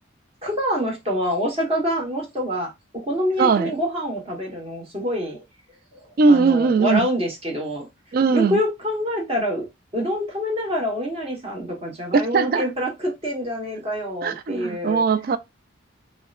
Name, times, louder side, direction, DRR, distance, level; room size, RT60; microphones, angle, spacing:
voice 1, 0.4-2.7 3.0-5.4 5.9-6.0 6.3-7.9 8.3-9.7 9.9-15.0, equal, 30° right, 1.2 m, -26 dB
voice 2, 3.4-3.7 6.2-7.1 8.1-8.6 12.1-12.7 14.2-15.4, right 4 dB, 45° right, 0.3 m, -19 dB
4.7 x 2.1 x 2.4 m
head